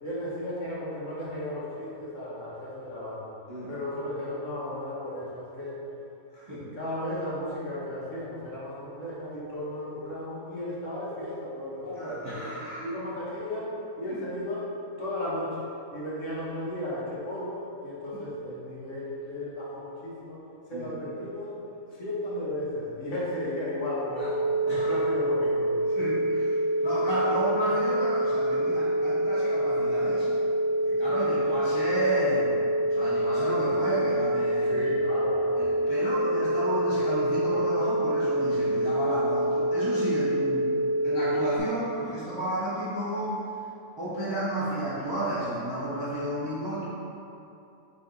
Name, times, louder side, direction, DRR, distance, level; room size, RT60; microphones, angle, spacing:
voice 1, 0.0-3.3 3.7-5.8 6.5-12.5 12.8-14.7 15.0-15.6 15.9-20.4 20.7-21.6 21.9-24.4 24.7-25.8 26.8-26.9 34.6-35.7, left 1 dB, 60° left, -7 dB, 1.3 m, -34 dB
voice 2, 6.3-6.7 11.9-12.9 20.7-20.9 24.1-24.3 24.7-24.9 26.0-30.3 30.8-32.6 32.9-34.8 35.6-40.7 41.0-43.4 44.0-46.8, right 1 dB, 25° right, -10 dB, 0.6 m, -32 dB
sound 1, 24.2-41.6, right 1 dB, 65° right, 0.8 m, -26 dB
4.0 x 3.3 x 3.8 m, 2.7 s
omnidirectional pair, 1.5 m